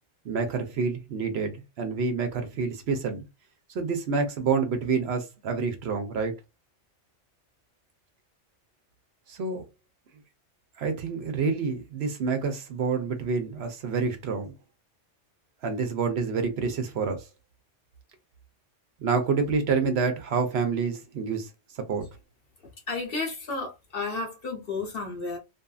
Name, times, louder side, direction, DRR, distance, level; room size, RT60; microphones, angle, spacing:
voice 1, 0.2-3.2 3.7-6.3 9.3-9.6 10.8-14.5 15.6-17.3 19.0-21.5 21.9-22.1, right 5 dB, 65° right, 0.9 m, -28 dB
voice 2, 22.9-25.4, left 3 dB, 55° left, 1.1 m, -32 dB
2.6 x 2.5 x 2.3 m
omnidirectional pair, 1.2 m